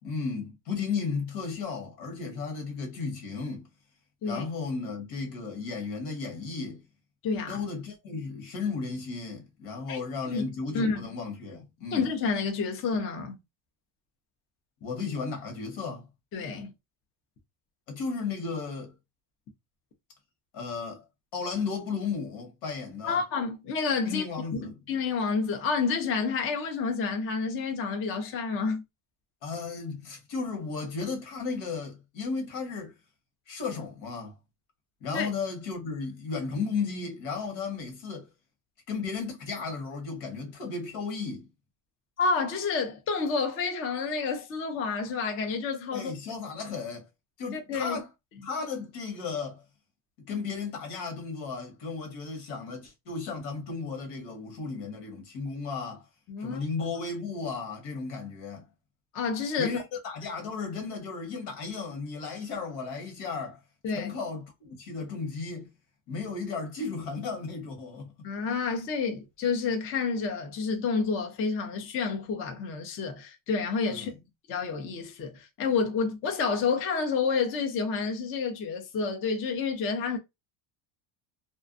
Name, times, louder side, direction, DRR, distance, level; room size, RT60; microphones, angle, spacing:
voice 1, 0.0-3.7 4.2-6.8 7.5-12.1 14.8-16.1 17.9-18.9 20.5-21.0 21.3-23.2 24.0-24.8 29.4-32.9 33.5-34.3 35.0-38.3 38.9-41.5 45.9-47.1 47.4-48.1 48.4-49.6 50.2-56.0 56.4-58.7 59.6-63.6 63.9-65.7 66.1-68.3 73.9-74.1, left 4 dB, 80° left, 1.3 m, -34 dB
voice 2, 7.2-7.6 9.9-10.0 10.3-11.0 11.9-13.4 16.3-16.7 23.0-28.8 35.1-35.3 42.2-46.1 47.5-48.0 56.3-56.6 59.1-59.8 63.8-64.1 68.2-74.1 74.5-80.2, left 5 dB, 30° left, 0.4 m, -29 dB
2.5 x 2.2 x 2.5 m
cardioid pair, 135°, 48 cm